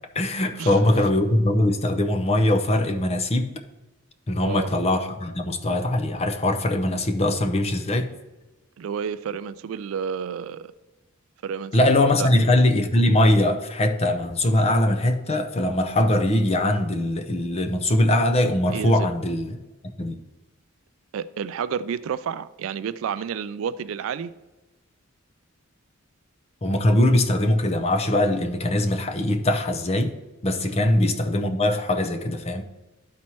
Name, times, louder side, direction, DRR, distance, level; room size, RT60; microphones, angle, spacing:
voice 1, 0.1-3.5 4.3-8.1 11.7-19.6 20.0-20.2 26.6-30.1 30.4-32.6, left 1 dB, 30° left, 6 dB, 0.6 m, -21 dB
voice 2, 8.8-10.7 11.4-11.8 12.2-12.3 18.7-19.1 21.1-24.3 30.7-30.8, right 7 dB, 70° right, 15 dB, 0.3 m, -30 dB
12.5 x 4.2 x 3.1 m, 1.1 s
head